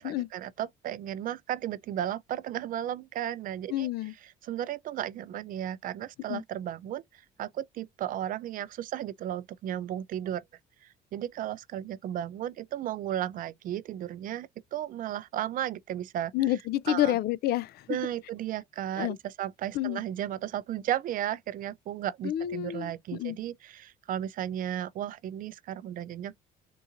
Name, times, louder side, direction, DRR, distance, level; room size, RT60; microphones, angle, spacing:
voice 1, 0.0-3.9 4.2-10.4 10.8-16.3 16.9-17.2 17.9-26.4, right 11 dB, 55° right, 0.4 m, -34 dB
voice 2, 3.7-4.1 6.3-6.4 16.3-17.9 19.0-19.2 19.7-20.0 22.2-23.4, left 13 dB, 70° left, 0.4 m, -29 dB
3.8 x 2.7 x 2.5 m
cardioid pair, 110°, 17 cm